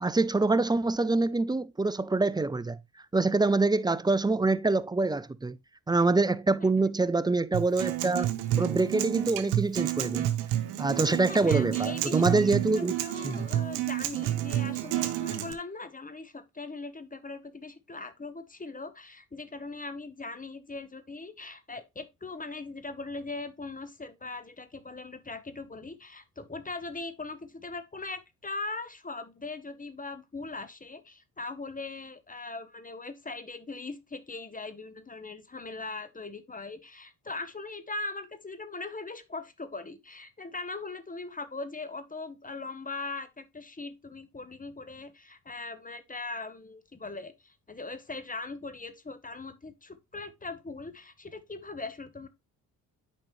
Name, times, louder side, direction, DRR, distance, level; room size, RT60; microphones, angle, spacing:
voice 1, 0.0-2.8 3.1-5.6 5.9-8.3 8.6-10.3 10.8-12.9 13.2-13.5, right 3 dB, 10° right, 0.4 m, -25 dB
Acoustic guitar, 7.5-15.5, right 13 dB, 85° right, 0.9 m, -30 dB
voice 2, 11.3-52.3, left 3 dB, 20° left, 1.1 m, -40 dB
8.7 x 5.3 x 3.1 m
supercardioid pair, 55°, 38 cm